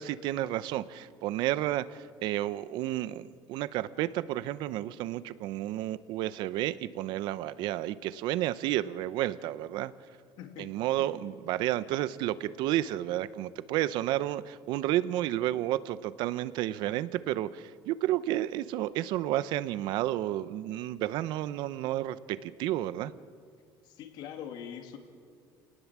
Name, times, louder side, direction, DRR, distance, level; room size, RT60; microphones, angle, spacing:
voice 1, 0.0-9.9 10.6-23.1, right 14 dB, 60° right, 16 dB, 0.8 m, -31 dB
voice 2, 10.4-10.7 11.0-11.1 24.0-25.0, left 9 dB, 55° left, 5 dB, 2.5 m, -42 dB
29.0 x 19.0 x 7.4 m, 2.2 s
cardioid pair, 165°, 9 cm